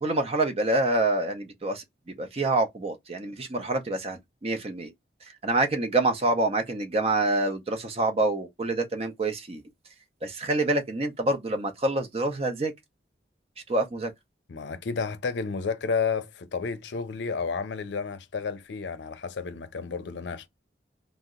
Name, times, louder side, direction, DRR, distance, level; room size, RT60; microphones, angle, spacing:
voice 1, 0.0-4.9 5.4-9.6 10.2-12.7 13.7-14.1, right 2 dB, 35° right, 0.6 m, -26 dB
voice 2, 14.5-20.5, left 5 dB, 80° left, 0.5 m, -31 dB
2.8 x 2.0 x 3.6 m
head